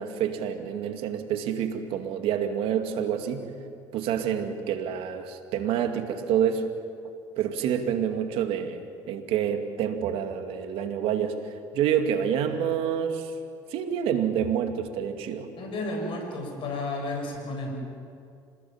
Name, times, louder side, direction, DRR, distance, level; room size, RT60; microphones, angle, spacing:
voice 1, 0.0-3.5 3.9-6.7 7.4-8.8 9.1-13.3 13.7-15.5, right 8 dB, 70° right, 6 dB, 2.4 m, -28 dB
voice 2, 15.6-17.7, left 2 dB, 55° left, 1 dB, 7.6 m, -32 dB
27.0 x 20.0 x 7.5 m, 2.4 s
supercardioid pair, 80°, 10 cm